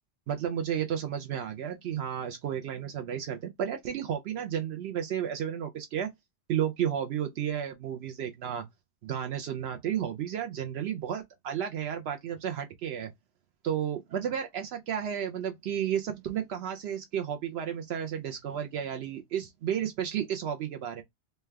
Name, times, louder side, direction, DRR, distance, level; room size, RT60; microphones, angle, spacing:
voice 1, 0.3-6.1 6.5-8.6 9.0-13.1 13.6-21.0, right 9 dB, 75° right, 0.8 m, -32 dB
3.3 x 2.2 x 3.3 m
omnidirectional pair, 1.1 m